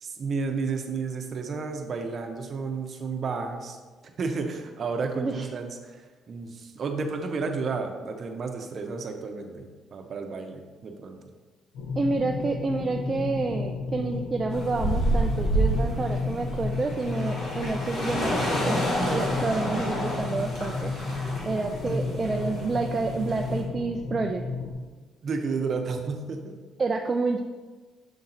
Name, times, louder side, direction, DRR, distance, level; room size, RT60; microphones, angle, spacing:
voice 1, 0.0-3.8 4.2-11.2 21.9-22.0 25.2-26.6, right 4 dB, 40° right, 4 dB, 0.7 m, -32 dB
voice 2, 5.1-5.5 12.0-20.9 21.5-24.4 26.8-27.4, right 3 dB, 25° right, 3 dB, 0.3 m, -29 dB
sound 1, 11.7-24.7, left 4 dB, 85° left, 0.9 m, -33 dB
sound 2, 14.5-23.6, right 1 dB, 50° left, 2.0 m, -29 dB
6.7 x 4.3 x 4.0 m, 1.4 s
cardioid pair, 150°, 0 cm